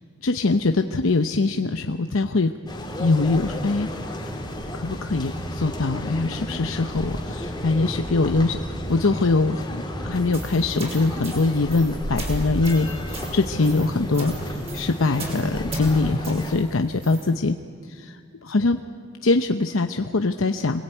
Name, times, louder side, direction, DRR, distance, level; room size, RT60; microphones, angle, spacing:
voice 1, 0.2-2.5 3.0-3.9 4.7-17.6 17.8-18.8 19.2-20.8, left 3 dB, 85° left, 6 dB, 0.8 m, -23 dB
sound 1, 2.7-16.6, equal, 20° left, 3.3 m, -32 dB
sound 2, 10.1-17.3, right 1 dB, 30° right, 5.5 m, -36 dB
26.5 x 21.0 x 9.1 m, 2.1 s
head